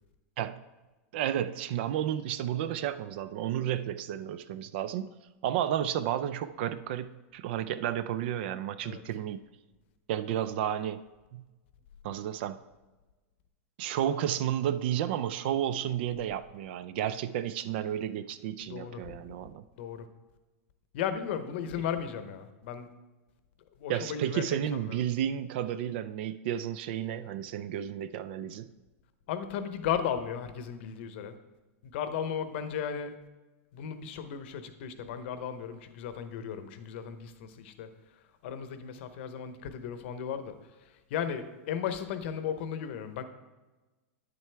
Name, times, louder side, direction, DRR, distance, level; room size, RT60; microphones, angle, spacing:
voice 1, 1.1-5.1 5.4-9.4 10.1-11.0 11.3-11.5 12.0-12.6 13.8-19.7 23.9-28.7, right 10 dB, 45° right, 13 dB, 0.4 m, -32 dB
voice 2, 18.7-19.4 19.7-20.1 20.9-22.9 23.8-25.0 29.3-31.4 31.8-33.1 33.7-43.2, left 8 dB, 50° left, 10 dB, 0.8 m, -36 dB
9.5 x 7.6 x 3.4 m, 1.2 s
supercardioid pair, 170°, 8 cm